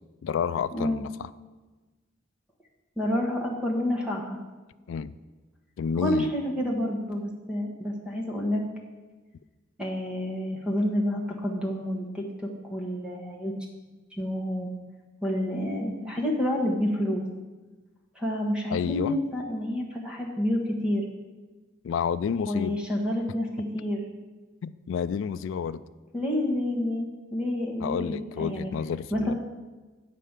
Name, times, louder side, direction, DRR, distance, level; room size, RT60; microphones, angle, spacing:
voice 1, 0.2-1.3 4.9-5.1 5.8-6.3 18.7-19.2 21.8-22.8 24.6-25.8 27.8-29.3, left 7 dB, 80° left, 14 dB, 0.3 m, -30 dB
voice 2, 3.0-4.4 6.0-8.6 9.8-12.2 12.7-13.5 14.2-14.7 15.2-17.2 18.1-21.0 22.5-24.0 26.1-27.1 27.3-28.7 29.1-29.3, left 1 dB, 5° right, -1 dB, 1.1 m, -28 dB
8.4 x 5.0 x 7.3 m, 1.3 s
head